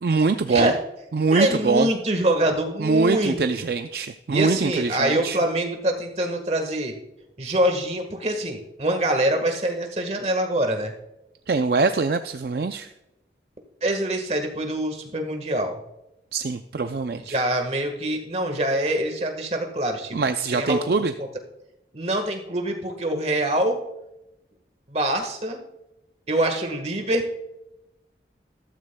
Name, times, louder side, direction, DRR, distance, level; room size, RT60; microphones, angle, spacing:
voice 1, 0.0-0.7 1.1-1.9 2.8-5.4 11.5-12.9 16.3-17.4 20.1-21.1, right 4 dB, 60° right, 8 dB, 0.4 m, -23 dB
voice 2, 1.3-3.6 4.3-6.9 7.4-10.9 13.8-15.8 17.2-20.2 20.6-21.3 21.9-23.8 24.9-25.6 26.3-27.3, right 1 dB, 35° right, 5 dB, 1.5 m, -25 dB
14.0 x 13.0 x 2.3 m, 0.90 s
head